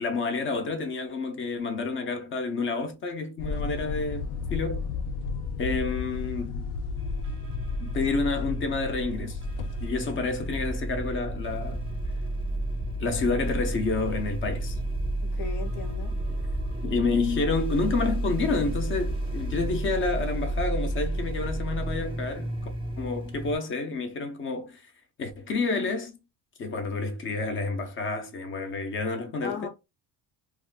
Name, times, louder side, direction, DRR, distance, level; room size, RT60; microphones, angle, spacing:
voice 1, 0.0-4.8 5.6-6.7 7.8-9.4 9.8-11.8 13.0-14.8 16.8-22.5 23.0-24.8 25.2-26.1 26.6-29.7, left 3 dB, 30° left, 0.4 m, -29 dB
sound 1, 3.4-9.9, left 4 dB, 85° left, 0.5 m, -33 dB
sound 2, 7.0-23.6, right 1 dB, 15° right, 0.6 m, -31 dB
voice 2, 15.4-16.1 29.4-29.7, left 7 dB, 65° left, 0.9 m, -36 dB
2.4 x 2.4 x 3.2 m
cardioid pair, 180°, 40 cm